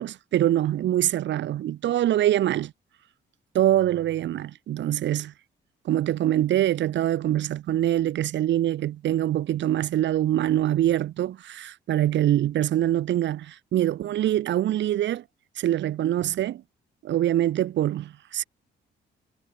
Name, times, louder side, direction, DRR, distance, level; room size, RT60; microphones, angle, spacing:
voice 1, 0.0-2.7 3.5-5.3 5.8-15.2 15.6-16.6 17.0-18.4, right 12 dB, 65° right, 0.8 m, -24 dB
cardioid pair, 90°, 20 cm